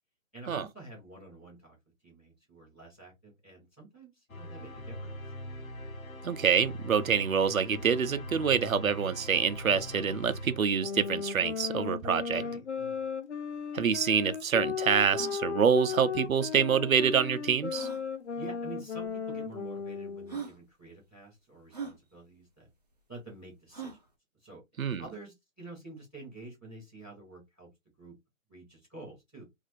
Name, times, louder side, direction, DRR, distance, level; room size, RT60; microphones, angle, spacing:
voice 1, 0.3-1.7 2.0-5.2 12.4-13.1 18.4-22.7 23.1-24.0 24.4-24.6 25.0-27.7 28.0-28.1 28.5-29.4, right 2 dB, ahead, 1.1 m, -48 dB
sound 1, 4.3-11.3, equal, 85° left, 1.1 m, -42 dB
voice 2, 6.2-12.4 13.7-17.9 24.8-25.0, right 7 dB, 85° right, 0.8 m, -26 dB
sound 2, 10.8-20.5, left 6 dB, 55° left, 0.5 m, -36 dB
sound 3, 13.5-13.6 13.8-13.9 14.4-14.5 15.0-15.4 16.7-16.8 17.7-18.0 19.0-19.1 19.9-20.0 20.3-20.6 21.7-22.0 23.7-24.1, right 6 dB, 30° right, 0.8 m, -41 dB
4.1 x 2.8 x 2.6 m
hypercardioid pair, 175°, 40 cm